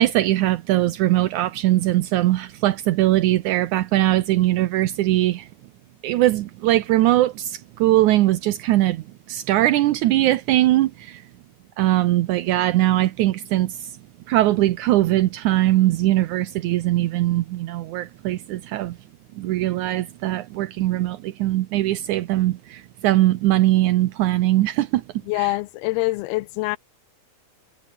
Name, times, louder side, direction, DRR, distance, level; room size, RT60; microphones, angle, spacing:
voice 1, 0.0-5.5 6.0-11.2 11.8-13.9 14.3-19.0 19.4-25.0 25.4-25.5, right 15 dB, 85° right, 1.7 m, -21 dB
voice 2, 25.3-26.8, left 21 dB, 85° left, 2.6 m, -24 dB
omnidirectional pair, 4.5 m